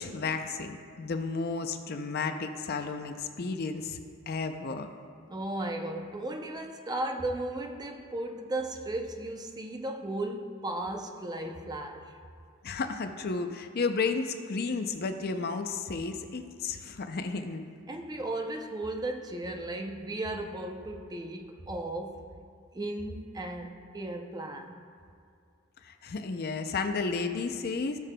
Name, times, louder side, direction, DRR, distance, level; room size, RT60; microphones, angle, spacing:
voice 1, 0.0-4.0 4.3-4.9 12.6-17.7 25.8-28.0, left 4 dB, 50° left, 7 dB, 0.5 m, -32 dB
voice 2, 5.3-12.2 17.9-22.3 22.7-24.8, right 1 dB, 20° right, 4 dB, 0.5 m, -35 dB
16.5 x 6.7 x 2.2 m, 2.4 s
head